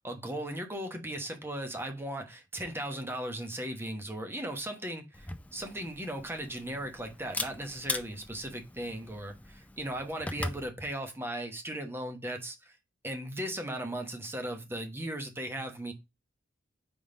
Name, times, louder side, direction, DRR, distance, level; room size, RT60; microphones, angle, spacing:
voice 1, 0.0-12.7 13.0-15.9, right 1 dB, 10° right, 1.0 m, -37 dB
Camera, 5.1-10.7, left 2 dB, 10° left, 0.5 m, -40 dB
5.2 x 3.9 x 4.9 m
head